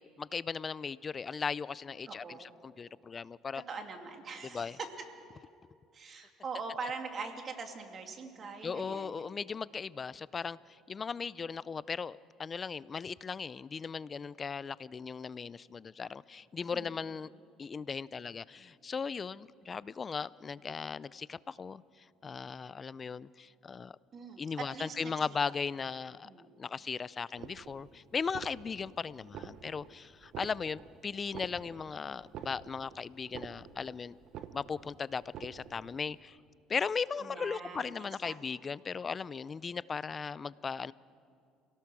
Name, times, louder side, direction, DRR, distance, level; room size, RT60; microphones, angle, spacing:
voice 1, 0.0-3.6 4.4-4.8 8.6-17.3 17.6-21.8 22.2-24.0 24.4-26.3 26.6-34.2 34.5-36.4 36.7-40.9, left 5 dB, 30° left, 20 dB, 0.4 m, -37 dB
voice 2, 2.1-2.5 3.7-4.9 5.9-9.3 16.7-17.0 24.1-25.4 26.2-26.5 37.2-37.9 38.2-38.3, right 4 dB, 40° right, 4 dB, 2.5 m, -42 dB
sound 1, 27.4-27.9 28.2-28.9 29.2-29.9 30.2-30.9 31.2-31.9 32.2-32.9 33.2-33.9 34.2-34.9 35.2-35.9, right 9 dB, 60° right, 1.1 m, -46 dB
28.0 x 18.0 x 6.1 m, 2.3 s
cardioid pair, 110°, 0 cm